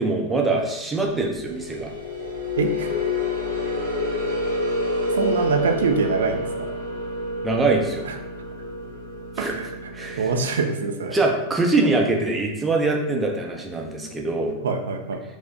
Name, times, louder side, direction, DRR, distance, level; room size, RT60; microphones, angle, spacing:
voice 1, 0.0-1.9 7.4-8.1 9.4-9.5 9.9-10.3 11.1-14.5, right 3 dB, 10° right, 0 dB, 0.6 m, -23 dB
sound 1, 1.4-10.4, left 2 dB, 90° right, 1.1 m, -28 dB
voice 2, 2.6-2.9 5.1-6.7 8.0-8.2 9.4-11.2 14.6-15.2, right 4 dB, 65° right, 4 dB, 0.4 m, -25 dB
4.4 x 2.1 x 2.7 m, 0.94 s
figure-of-eight pair, 90°, 0 cm